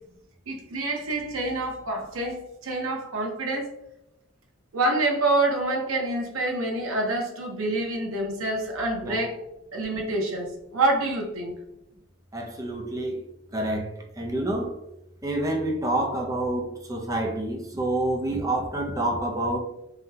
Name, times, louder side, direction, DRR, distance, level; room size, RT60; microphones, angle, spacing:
voice 1, 0.5-3.7 4.7-9.3 9.7-11.6, right 2 dB, 90° right, 0.7 m, -27 dB
voice 2, 12.3-13.2 13.5-13.9 14.2-14.8 15.2-19.6, right 1 dB, 15° right, 0.4 m, -28 dB
3.7 x 2.2 x 2.7 m
head